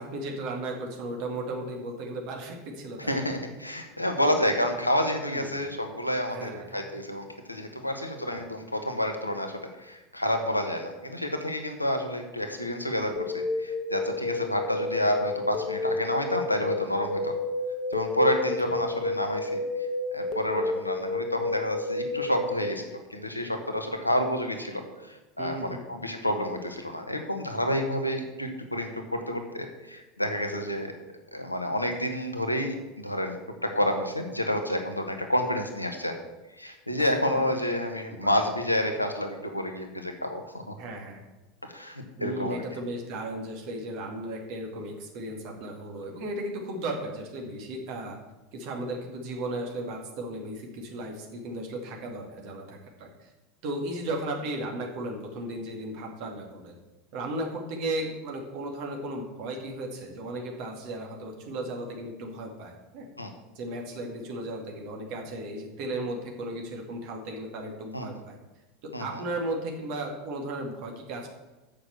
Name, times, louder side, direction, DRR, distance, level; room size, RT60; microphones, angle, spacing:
voice 1, 0.0-3.3 5.3-5.6 6.3-6.8 8.3-8.4 18.6-18.7 25.4-25.8 37.0-37.7 38.1-38.4 40.8-41.2 42.2-48.2 48.5-53.3 53.6-56.8 57.1-63.1 63.6-68.4 68.8-71.3, right 1 dB, 50° right, 1 dB, 2.3 m, -35 dB
voice 2, 3.0-17.4 17.9-19.6 20.1-22.8 23.1-30.9 31.3-36.2 36.6-40.7 41.6-42.6 63.2-63.3 67.9-68.1 68.9-69.2, left 1 dB, 90° left, 4 dB, 1.2 m, -29 dB
sound 1, 13.2-22.7, left 2 dB, 45° left, 1.2 m, -31 dB
7.6 x 6.7 x 7.7 m, 1.1 s
figure-of-eight pair, 80°, 0 cm